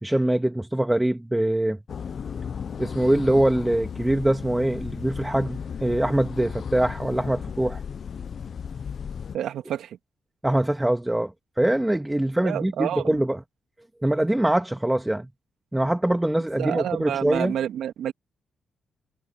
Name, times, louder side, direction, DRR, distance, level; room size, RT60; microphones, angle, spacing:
voice 1, 0.0-1.8 2.8-7.8 10.4-13.4 14.0-15.3 15.7-17.6, right 1 dB, 10° right, 1.9 m, -23 dB
sound 1, 1.9-9.4, left 7 dB, 60° left, 0.8 m, -35 dB
voice 2, 9.3-10.0 12.4-13.2 16.6-18.1, right 10 dB, 75° right, 2.5 m, -29 dB
supercardioid pair, 50°, 0 cm